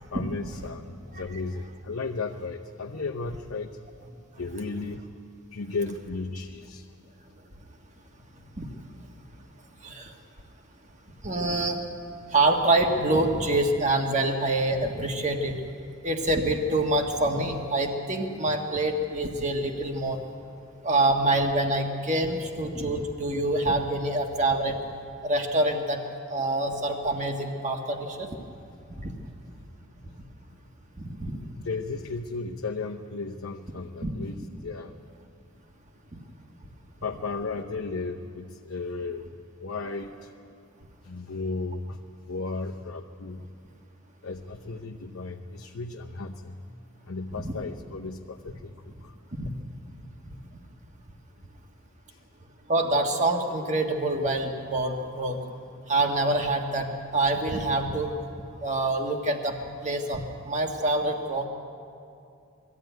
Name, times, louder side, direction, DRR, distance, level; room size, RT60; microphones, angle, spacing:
voice 1, 0.0-3.7 4.4-5.0 5.5-6.8 31.5-34.9 37.0-39.3 39.6-40.3 41.0-42.0 42.3-43.4 44.2-46.6 47.1-48.7 49.0-49.1, left 3 dB, 75° left, 1 dB, 0.9 m, -34 dB
voice 2, 9.8-10.1 11.2-11.8 12.3-15.5 16.0-20.2 20.8-24.8 25.2-26.0 26.3-28.3 28.9-29.1 31.0-31.4 34.0-34.1 47.4-47.5 49.4-49.5 52.7-55.4 55.9-58.1 58.6-59.6 59.8-61.5, right 2 dB, 35° right, 3 dB, 1.6 m, -26 dB
20.5 x 13.5 x 9.2 m, 2.5 s
head